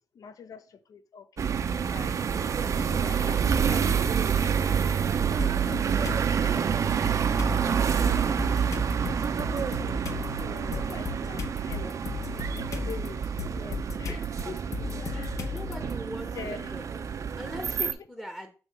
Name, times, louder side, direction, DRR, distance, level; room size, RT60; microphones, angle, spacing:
voice 1, 0.1-2.1 2.4-5.1 5.7-5.8 6.0-6.6 6.9-7.2 7.8-9.3 9.6-9.8 10.4-12.0 12.5-15.4 16.2-16.8 17.8-17.9, left 6 dB, 80° left, 0.6 m, -45 dB
sound 1, 1.4-17.9, right 7 dB, 65° right, 0.5 m, -27 dB
sound 2, 5.4-6.2 6.7-15.9, left 6 dB, 60° left, 1.0 m, -36 dB
voice 2, 14.9-16.9 17.4-17.7 18.1-18.5, equal, 10° left, 0.8 m, -41 dB
7.0 x 3.2 x 5.2 m
wide cardioid pair, 105°, 6 cm